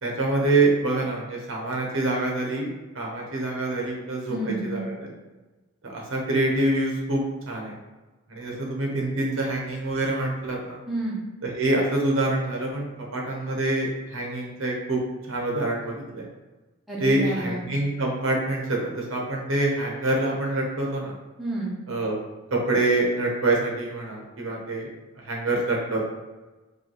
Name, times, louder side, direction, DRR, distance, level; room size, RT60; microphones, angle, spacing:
voice 1, 0.0-5.1 5.8-7.8 8.3-10.8 11.4-15.0 15.3-16.2 17.0-21.1 21.9-22.2 22.5-24.9 25.3-26.0, right 2 dB, 65° right, -1 dB, 0.9 m, -26 dB
voice 2, 4.3-4.9 10.9-11.2 16.9-17.6 21.4-21.8, right 2 dB, ahead, -7 dB, 0.8 m, -29 dB
5.0 x 2.6 x 2.9 m, 1.2 s
head